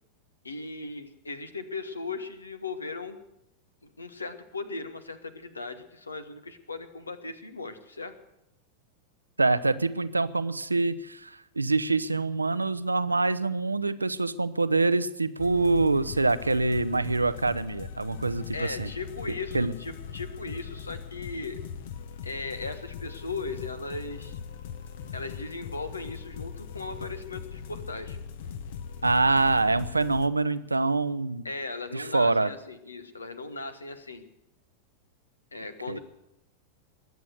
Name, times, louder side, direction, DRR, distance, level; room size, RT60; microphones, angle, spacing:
voice 1, 0.4-3.2 3.8-8.1 18.5-21.6 22.2-24.4 25.1-28.2 31.4-34.2 35.5-36.0, left 3 dB, 80° left, 11 dB, 1.3 m, -37 dB
voice 2, 9.4-18.9 19.5-19.7 29.0-31.5 31.9-32.5 35.9-36.0, right 3 dB, 80° right, 14 dB, 0.6 m, -25 dB
sound 1, 15.4-30.3, left 7 dB, 55° left, 1.1 m, -40 dB
21.5 x 8.3 x 8.1 m, 0.86 s
figure-of-eight pair, 90°, 0 cm